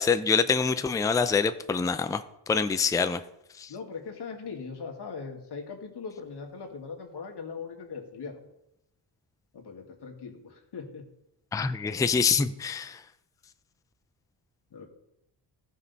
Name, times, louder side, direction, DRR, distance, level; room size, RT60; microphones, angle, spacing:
voice 1, 0.0-3.2 3.6-3.7 11.5-13.0, left 5 dB, 10° left, 11 dB, 0.4 m, -25 dB
voice 2, 3.7-8.5 9.5-11.1 14.7-14.9, left 5 dB, 60° left, 2 dB, 1.9 m, -40 dB
15.5 x 5.5 x 4.0 m, 0.82 s
cardioid pair, 120°, 45 cm